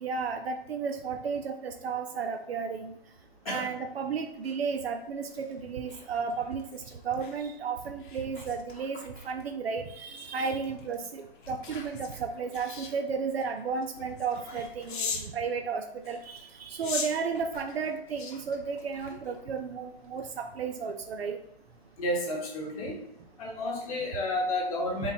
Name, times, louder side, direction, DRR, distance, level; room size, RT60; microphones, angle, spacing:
voice 1, 0.0-2.9 3.5-6.8 7.0-21.4 25.0-25.1, right 5 dB, 70° right, 6 dB, 0.6 m, -33 dB
sound 1, 4.2-15.4 16.0-19.6 20.0-20.3, left 5 dB, 50° left, 0.9 m, -42 dB
voice 2, 22.0-23.0 23.4-25.1, left 1 dB, 35° left, -1 dB, 1.3 m, -31 dB
3.7 x 2.7 x 4.1 m, 0.78 s
hypercardioid pair, 155°, 31 cm